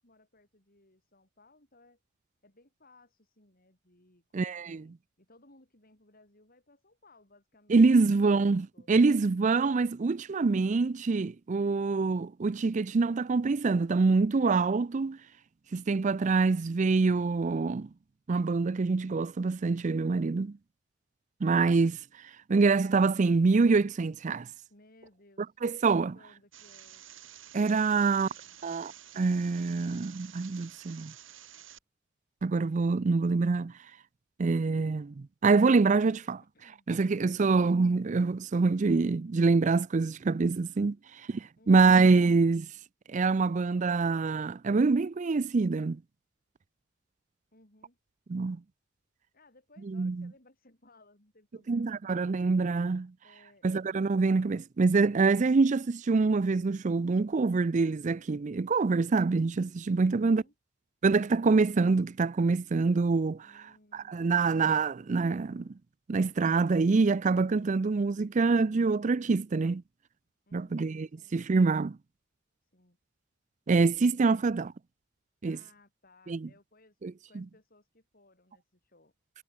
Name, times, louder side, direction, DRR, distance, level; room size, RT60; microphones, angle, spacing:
voice 1, 0.0-2.0 2.4-8.2 8.7-8.9 24.7-25.6 25.9-27.1 27.7-28.6 36.4-36.9 37.2-37.7 41.6-42.0 47.5-48.0 49.3-51.9 53.2-53.7 60.1-60.5 63.4-64.5 70.5-71.4 72.6-73.0 74.3-74.5 75.4-77.0 77.3-79.1, left 2 dB, 45° left, 5.6 m, -62 dB
voice 2, 4.3-4.8 7.7-15.2 15.7-17.9 18.3-20.6 21.4-22.0 22.5-24.5 25.6-26.1 27.5-28.3 28.6-31.1 32.4-33.7 34.4-36.4 36.9-41.0 41.3-42.7 43.1-46.0 48.3-48.6 49.9-50.3 51.7-53.1 53.6-60.4 61.0-63.5 63.9-65.7 66.1-69.8 70.5-72.0 73.7-74.7 75.4-75.6 76.3-76.5 77.0-77.4, right 4 dB, 40° right, 0.4 m, -25 dB
sound 1, 26.5-31.8, right 11 dB, 75° right, 6.1 m, -51 dB
head